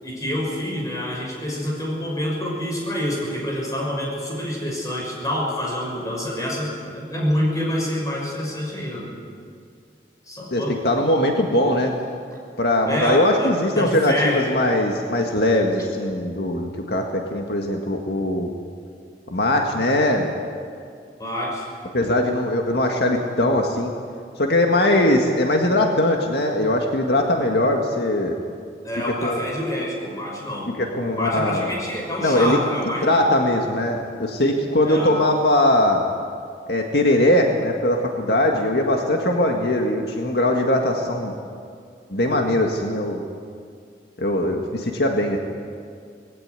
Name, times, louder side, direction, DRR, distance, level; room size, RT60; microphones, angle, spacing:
voice 1, 0.0-9.1 10.2-10.8 12.8-14.5 21.2-21.7 28.8-30.7 31.1-33.2 34.8-35.1, left 1 dB, 20° left, -2 dB, 6.1 m, -27 dB
voice 2, 10.5-11.9 12.6-18.5 19.3-20.3 21.9-23.9 24.4-28.3 29.2-29.4 30.8-31.7 32.2-32.6 33.0-36.0 36.7-41.3 42.1-43.2 44.2-45.4, left 1 dB, 70° left, 2 dB, 1.8 m, -20 dB
20.0 x 16.5 x 9.6 m, 2.2 s
head